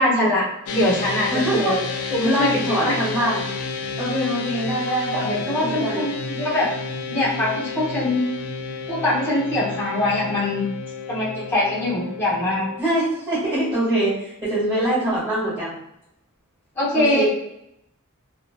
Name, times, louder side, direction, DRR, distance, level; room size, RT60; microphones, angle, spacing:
voice 1, 0.0-1.8 2.1-2.9 5.1-6.7 7.1-8.2 8.9-10.7 11.1-12.7 16.7-17.2, left 1 dB, 10° left, -8 dB, 1.0 m, -22 dB
sound 1, 0.7-12.8, left 4 dB, 75° left, 0.4 m, -31 dB
voice 2, 1.3-1.8 2.2-3.5 4.0-6.0 12.8-15.7 16.9-17.2, right 1 dB, 20° right, -12 dB, 1.5 m, -24 dB
2.8 x 2.2 x 2.4 m, 0.80 s
head